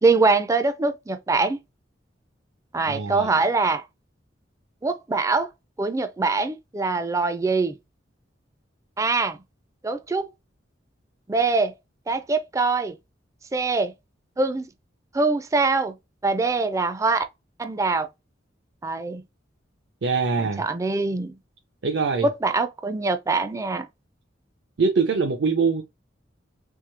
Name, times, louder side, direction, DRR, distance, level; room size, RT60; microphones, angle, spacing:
voice 1, 0.0-1.6 2.7-3.8 4.8-5.5 5.8-7.8 9.0-9.4 9.8-10.3 11.3-11.7 12.1-12.9 13.5-13.9 14.4-14.7 15.1-15.9 16.2-17.2 17.6-18.1 18.8-19.2 20.4-21.3 22.2-23.9, right 3 dB, 15° right, 0.3 m, -23 dB
voice 2, 2.9-3.4 20.0-20.6 21.8-22.3 24.8-25.8, right 4 dB, 70° right, 0.6 m, -23 dB
3.6 x 3.0 x 3.3 m
head